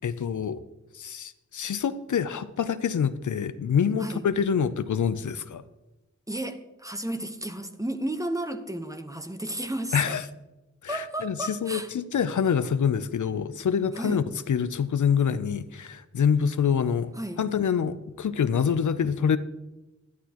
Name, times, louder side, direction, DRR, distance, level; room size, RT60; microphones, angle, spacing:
voice 1, 0.0-0.6 0.9-5.6 9.9-10.2 10.8-17.1 17.4-19.4, left 7 dB, 85° left, 0.5 m, -26 dB
voice 2, 6.3-10.2 10.9-11.9 13.9-14.2 17.2-17.4, right 1 dB, 10° right, 1.0 m, -33 dB
11.0 x 11.0 x 2.9 m
wide cardioid pair, 50°, 29 cm